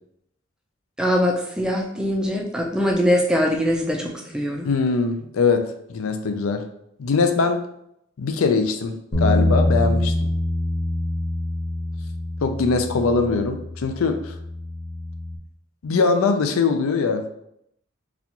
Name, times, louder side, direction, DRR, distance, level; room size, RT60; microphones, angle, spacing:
voice 1, 1.0-4.7, equal, 5° right, 0 dB, 0.3 m, -22 dB
voice 2, 4.6-6.6 7.0-7.6 8.2-10.1 12.4-14.3 15.8-17.2, left 4 dB, 85° left, 7 dB, 0.4 m, -22 dB
Bass guitar, 9.1-15.4, left 1 dB, 45° left, 0.7 m, -25 dB
4.1 x 2.3 x 2.8 m, 0.75 s
head